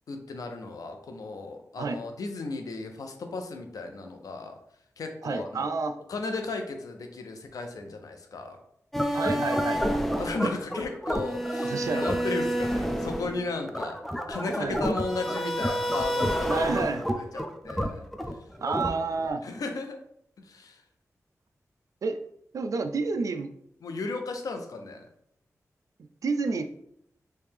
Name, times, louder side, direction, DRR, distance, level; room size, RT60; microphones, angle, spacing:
voice 1, 0.1-4.6 5.0-5.7 6.1-8.6 10.2-18.1 19.4-20.0 20.4-20.8 23.8-25.1, left 3 dB, 90° left, 5 dB, 0.5 m, -35 dB
voice 2, 5.2-6.0 9.1-9.8 11.6-12.0 14.6-14.8 16.5-17.0 18.6-19.4 22.0-22.2 22.5-23.5 26.0-26.7, right 4 dB, 70° right, 8 dB, 0.3 m, -29 dB
sound 1, 8.9-19.3, equal, 5° left, 0.4 m, -29 dB
3.2 x 2.7 x 3.5 m, 0.73 s
wide cardioid pair, 90°, 6 cm